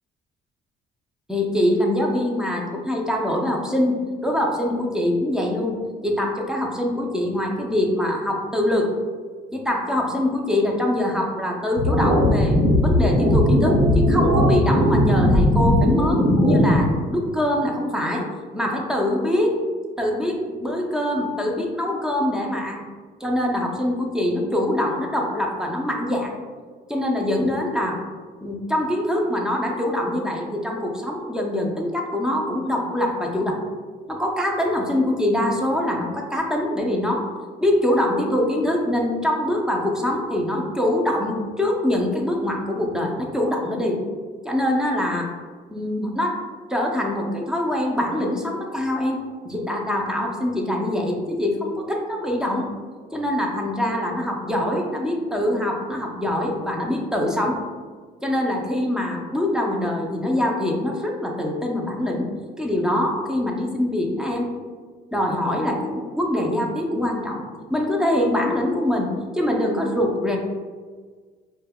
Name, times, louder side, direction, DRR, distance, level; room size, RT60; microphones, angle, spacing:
voice 1, 1.3-8.9 9.5-18.3 18.5-19.6 20.0-22.8 23.2-26.4 26.9-28.0 28.4-33.6 34.1-37.3 37.6-44.0 44.4-45.3 45.7-46.4 46.7-52.7 53.1-57.6 58.2-62.3 62.6-64.5 65.1-67.4 67.7-70.4, left 1 dB, 5° right, 0 dB, 0.5 m, -24 dB
sound 1, 11.8-16.8, left 1 dB, 45° right, 1.1 m, -18 dB
5.2 x 2.2 x 2.2 m, 1.5 s
cardioid pair, 110°, 17 cm